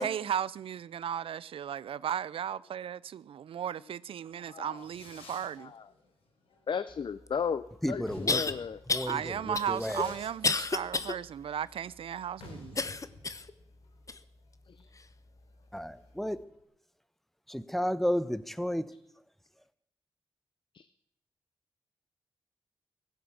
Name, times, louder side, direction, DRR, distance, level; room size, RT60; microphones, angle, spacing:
voice 1, 0.0-5.7 9.1-12.8, right 9 dB, 75° right, 0.5 m, -35 dB
Fireworks, 4.4-16.6, left 2 dB, 90° left, 3.7 m, -53 dB
voice 2, 4.5-4.9 5.6-5.9 6.7-8.8 14.7-14.9 20.7-20.9, left 6 dB, 60° left, 0.7 m, -35 dB
sound 1, 7.3-7.4 8.3-8.5 8.9-9.1 9.5-11.1 11.6-11.7 12.8-13.5 14.1-14.2 15.0-15.1, left 3 dB, 35° left, 1.0 m, -30 dB
voice 3, 7.8-8.4 8.9-10.1 15.7-16.4 17.5-18.9, equal, ahead, 1.1 m, -32 dB
15.5 x 12.0 x 7.3 m
cardioid pair, 60°, 9 cm